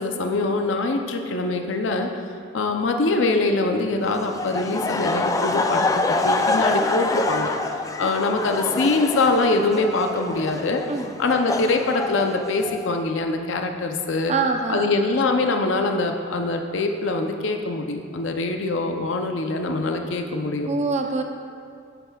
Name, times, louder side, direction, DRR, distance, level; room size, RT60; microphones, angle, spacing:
voice 1, 0.0-2.1 2.5-7.5 8.0-10.8 11.2-14.3 14.7-20.7, left 3 dB, 70° left, 4 dB, 0.6 m, -23 dB
Laughter, 4.3-12.9, left 2 dB, 20° left, 0.3 m, -26 dB
voice 2, 14.3-15.0 20.7-21.2, right 4 dB, 35° right, 4 dB, 0.6 m, -24 dB
10.0 x 9.0 x 2.3 m, 2.3 s
head